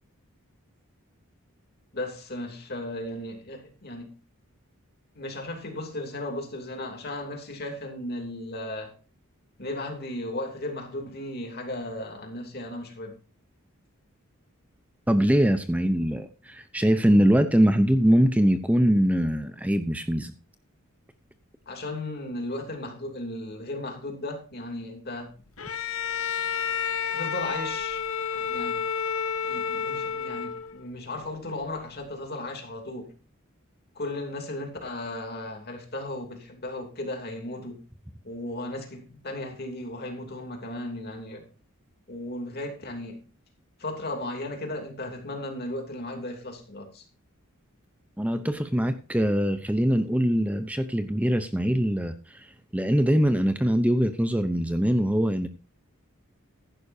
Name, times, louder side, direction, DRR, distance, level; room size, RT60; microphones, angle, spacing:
voice 1, 1.9-4.2 5.1-8.9 9.6-13.2 21.7-25.3 27.1-28.9 29.4-33.1 33.9-37.8 38.2-41.4 42.1-43.2 43.8-47.0, left 1 dB, 45° left, 2.9 m, -35 dB
voice 2, 15.1-20.3 48.2-55.5, equal, 5° right, 0.6 m, -23 dB
Bowed string instrument, 25.6-30.8, left 7 dB, 70° left, 0.8 m, -30 dB
15.0 x 11.0 x 2.7 m
head